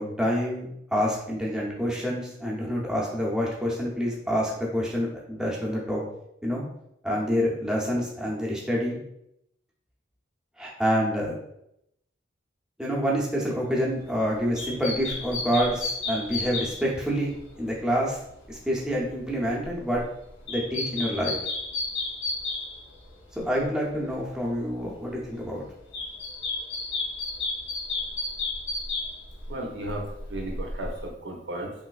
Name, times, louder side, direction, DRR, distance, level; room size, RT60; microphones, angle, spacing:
voice 1, 0.0-6.0 6.4-6.6 7.0-9.0 10.6-11.4 12.8-18.2 18.5-20.0 20.5-21.4 23.3-25.6, equal, 5° right, -4 dB, 0.6 m, -27 dB
sound 1, 14.0-23.6 23.9-24.9 25.2-31.1, left 3 dB, 80° left, 0.7 m, -33 dB
voice 2, 29.5-31.7, right 1 dB, 75° right, 1 dB, 0.6 m, -34 dB
3.2 x 3.0 x 2.3 m, 0.80 s
head